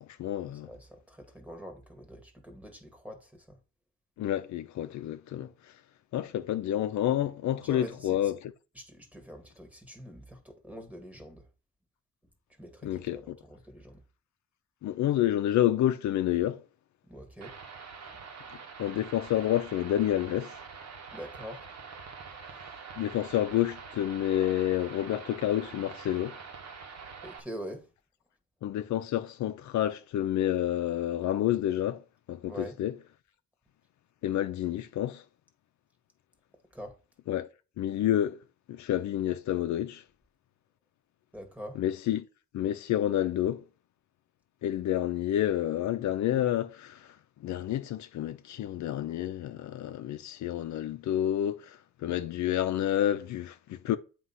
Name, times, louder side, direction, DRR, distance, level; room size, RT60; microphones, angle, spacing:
voice 1, 0.0-0.7 4.2-5.5 6.1-8.5 12.8-13.4 14.8-16.6 18.8-20.5 23.0-26.4 28.6-32.0 32.3-32.9 34.2-35.2 37.3-37.5 37.8-38.4 38.7-40.0 41.8-42.2 42.5-43.6 44.6-47.1 47.4-54.0, left 12 dB, 70° left, 0.6 m, -29 dB
voice 2, 0.6-3.6 7.6-8.3 8.7-11.5 12.6-14.0 17.1-17.6 18.1-18.3 21.1-21.7 27.2-27.9 32.4-32.8 36.7-37.0 41.3-41.8, equal, 5° right, 1.7 m, -44 dB
sound 1, 17.4-27.4, right 5 dB, 60° right, 1.5 m, -45 dB
7.9 x 3.0 x 5.5 m
cardioid pair, 90°, 30 cm